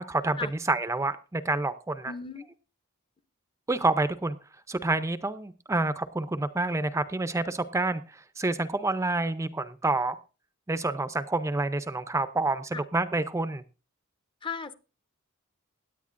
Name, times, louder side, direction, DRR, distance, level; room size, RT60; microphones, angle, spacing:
voice 1, 0.0-0.4 0.7-2.1 3.7-4.4 4.7-10.2 10.7-13.6, right 2 dB, 15° right, 0.5 m, -28 dB
voice 2, 2.0-2.5 12.7-12.8 14.4-14.7, left 5 dB, 25° left, 0.7 m, -36 dB
17.0 x 10.0 x 2.5 m
head